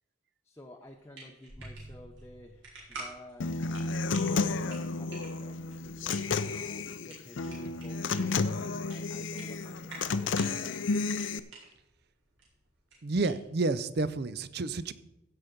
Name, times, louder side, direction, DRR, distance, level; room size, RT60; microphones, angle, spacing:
voice 1, 0.4-3.6 4.2-10.8, left 1 dB, 15° left, 2 dB, 0.6 m, -52 dB
sound 1, 0.8-13.8, right 2 dB, 85° right, 4.9 m, -50 dB
sound 2, 1.5-3.7, right 1 dB, 10° right, 1.0 m, -51 dB
Human voice / Acoustic guitar, 3.4-11.4, left 4 dB, 70° left, 0.5 m, -32 dB
voice 2, 13.0-14.9, right 3 dB, 55° right, 15 dB, 0.5 m, -30 dB
15.5 x 5.8 x 5.1 m, 0.91 s
head